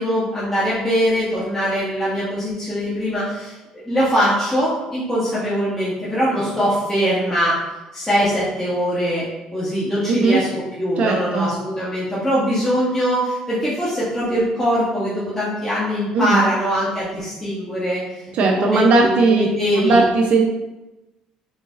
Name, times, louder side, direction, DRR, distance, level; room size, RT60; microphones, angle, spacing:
voice 1, 0.0-3.6 3.8-7.6 7.9-9.2 9.5-10.5 10.8-18.0 18.4-20.0, equal, 15° left, -10 dB, 1.3 m, -22 dB
voice 2, 10.1-10.4 11.0-11.5 16.1-16.5 18.3-19.4 19.8-20.4, right 3 dB, 60° right, 1 dB, 0.5 m, -17 dB
3.8 x 2.6 x 3.6 m, 1.0 s
supercardioid pair, 80°, 2 cm